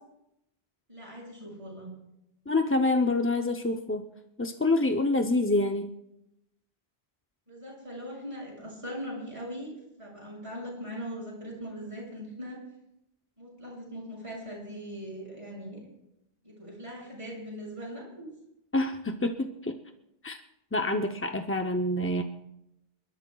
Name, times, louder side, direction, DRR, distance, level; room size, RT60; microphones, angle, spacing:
voice 1, 0.9-1.9 7.5-9.7 10.0-12.6 13.4-15.9 16.4-18.3, equal, 30° right, -4 dB, 6.6 m, -40 dB
voice 2, 2.5-4.1 4.4-5.9 18.7-19.8 20.2-20.4 20.7-22.2, left 2 dB, 20° left, 5 dB, 0.4 m, -27 dB
28.0 x 12.5 x 2.3 m, 0.85 s
omnidirectional pair, 1.0 m